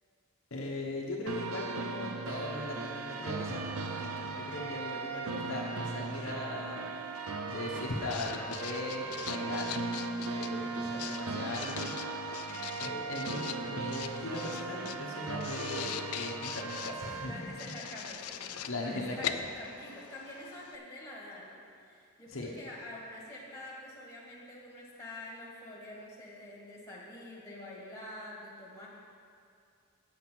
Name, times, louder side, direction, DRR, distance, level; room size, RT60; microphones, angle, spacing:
voice 1, 0.5-6.9 7.5-9.8 10.2-11.9 12.8-17.8 18.7-19.3 22.3-22.5, left 2 dB, 60° left, -2 dB, 1.1 m, -39 dB
sound 1, 1.3-17.3, right 4 dB, 75° right, 0.7 m, -38 dB
Writing, 7.5-20.8, left 9 dB, 85° left, 0.4 m, -43 dB
voice 2, 12.4-12.8 17.2-28.9, left 1 dB, 15° left, -4 dB, 1.8 m, -46 dB
8.4 x 6.1 x 7.5 m, 2.4 s
head